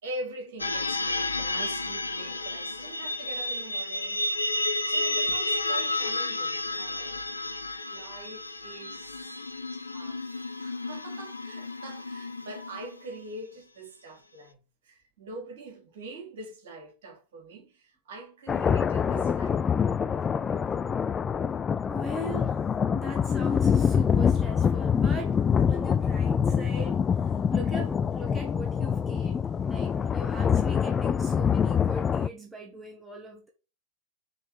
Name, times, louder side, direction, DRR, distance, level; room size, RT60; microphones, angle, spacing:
voice 1, 0.0-4.3 4.8-7.4 7.9-9.4 9.7-20.0, right 2 dB, 55° right, 3.1 m, -43 dB
sound 1, 0.6-13.1, left 2 dB, 80° left, 0.5 m, -31 dB
sound 2, 18.5-32.3, left 7 dB, 20° left, 0.3 m, -25 dB
voice 2, 21.9-22.6 22.9-25.4 25.7-33.5, equal, 10° right, 1.3 m, -40 dB
5.6 x 3.9 x 5.0 m
figure-of-eight pair, 90°, 0 cm